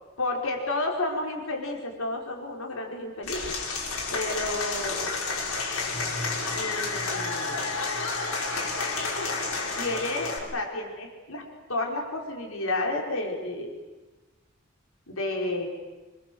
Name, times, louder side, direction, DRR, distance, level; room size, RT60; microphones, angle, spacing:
voice 1, 0.2-3.4 4.1-5.1 6.5-7.8 9.8-11.4 11.7-13.8 15.1-15.7, left 2 dB, 75° left, 1 dB, 5.2 m, -31 dB
Applause / Crowd, 3.2-10.4, left 3 dB, 90° left, 5.9 m, -30 dB
26.0 x 22.5 x 8.0 m, 1.2 s
head